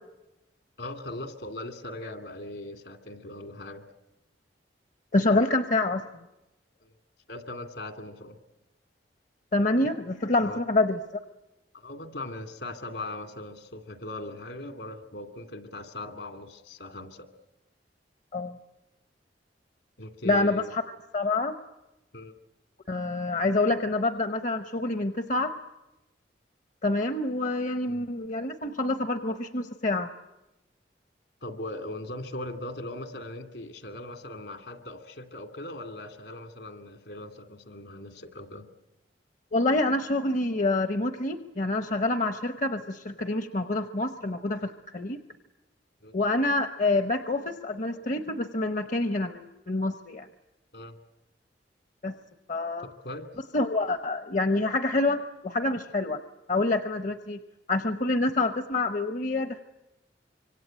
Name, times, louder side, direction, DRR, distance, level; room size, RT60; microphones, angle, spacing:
voice 1, 0.8-3.8 6.8-6.9 7.3-8.4 10.4-10.6 11.7-17.3 20.0-20.7 22.1-22.4 27.9-28.0 31.4-38.7 46.0-46.1 50.7-51.0 52.8-53.3, left 2 dB, 75° left, 7 dB, 2.6 m, -39 dB
voice 2, 5.1-6.0 9.5-11.2 18.3-18.6 20.2-20.8 21.1-21.6 22.9-25.5 26.8-30.1 39.5-45.2 46.1-50.3 52.0-52.1 52.5-52.9 53.5-56.2 56.5-57.4 57.7-59.6, left 2 dB, 45° left, 10 dB, 0.9 m, -27 dB
25.5 x 24.5 x 8.9 m, 0.97 s
head